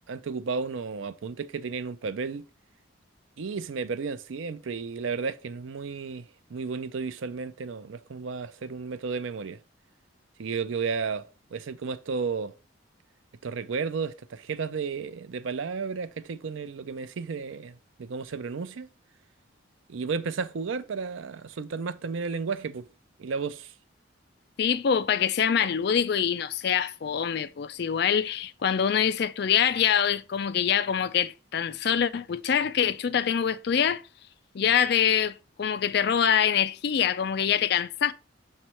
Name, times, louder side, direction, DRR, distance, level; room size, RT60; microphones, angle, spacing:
voice 1, 0.1-2.4 3.4-9.6 10.4-11.3 11.5-12.6 13.4-18.9 19.9-22.9 23.2-23.7, right 5 dB, 75° right, 0.5 m, -33 dB
voice 2, 24.6-34.0 34.5-38.1, left 8 dB, 55° left, 0.4 m, -25 dB
7.1 x 3.2 x 4.3 m
head